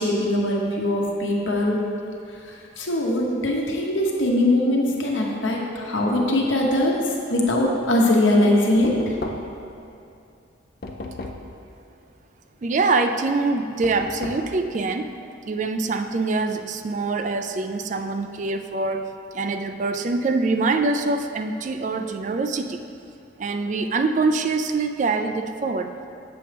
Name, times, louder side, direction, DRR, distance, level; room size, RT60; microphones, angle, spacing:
voice 1, 0.0-1.9 2.4-9.1, left 1 dB, 85° left, -1 dB, 1.1 m, -21 dB
Knock, 8.8-9.7 10.8-11.6 13.8-14.6, left 2 dB, 50° left, 0.5 m, -34 dB
voice 2, 12.6-15.1 15.5-22.8 23.4-25.9, right 3 dB, 40° right, 7 dB, 0.3 m, -24 dB
7.6 x 6.8 x 3.4 m, 2.6 s
head